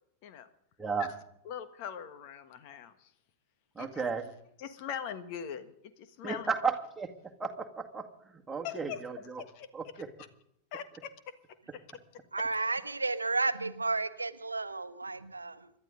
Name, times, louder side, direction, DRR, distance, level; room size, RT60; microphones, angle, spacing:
voice 1, 1.4-3.1 3.8-4.0 4.6-6.5 8.6-9.0 9.4-10.0 10.7-11.3 11.7-11.8 12.1-12.2, left 8 dB, 45° left, 12 dB, 1.4 m, -42 dB
voice 2, 3.8-4.3 6.2-7.1 7.4-8.1 8.5-9.4 9.7-10.1, right 5 dB, 10° right, 3 dB, 2.0 m, -34 dB
voice 3, 12.3-15.7, right 3 dB, 80° right, 11 dB, 1.0 m, -32 dB
27.0 x 12.0 x 3.9 m, 0.74 s
figure-of-eight pair, 90°, 0 cm